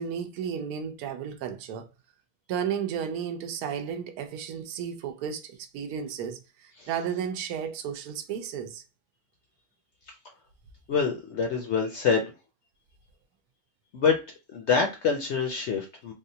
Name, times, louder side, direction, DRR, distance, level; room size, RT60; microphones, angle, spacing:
voice 1, 0.0-1.9 2.5-8.8, right 8 dB, 80° right, 1.1 m, -33 dB
voice 2, 10.9-12.2 13.9-14.2 14.5-16.1, left 5 dB, 65° left, 0.7 m, -26 dB
3.5 x 2.4 x 2.7 m
omnidirectional pair, 1.5 m